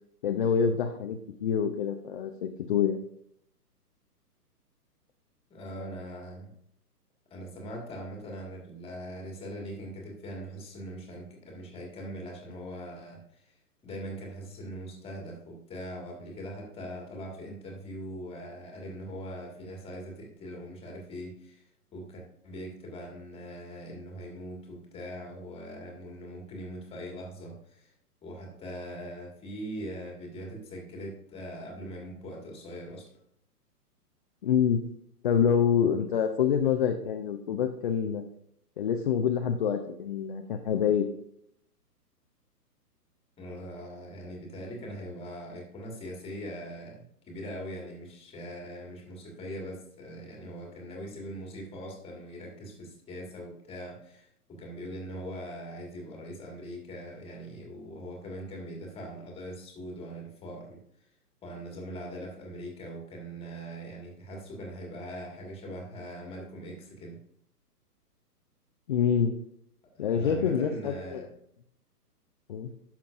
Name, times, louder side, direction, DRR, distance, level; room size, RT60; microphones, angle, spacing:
voice 1, 0.2-3.0 34.4-34.8 35.2-38.2 38.8-41.1 68.9-69.3 70.0-71.2 72.5-72.7, left 7 dB, 35° left, 4 dB, 0.5 m, -26 dB
voice 2, 5.5-6.5 7.3-13.6 13.8-21.6 21.9-27.9 28.2-33.1 43.4-60.8 61.4-67.2 69.9-71.3, equal, 10° left, 0 dB, 1.7 m, -41 dB
11.5 x 5.9 x 2.5 m, 0.71 s
figure-of-eight pair, 130°, 48 cm